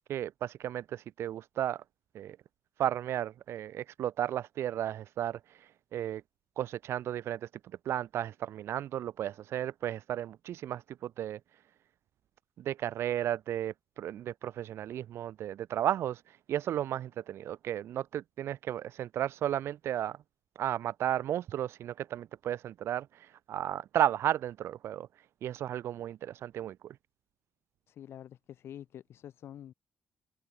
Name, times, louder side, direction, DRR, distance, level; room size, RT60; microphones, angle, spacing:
voice 1, 0.1-1.8 2.1-2.4 2.8-6.2 6.6-7.5 7.8-11.4 12.6-20.2 20.6-27.0, right 11 dB, 60° right, 0.6 m, -34 dB
voice 2, 27.9-29.7, left 10 dB, 55° left, 2.0 m, -47 dB
open air
cardioid pair, 175°, 5 cm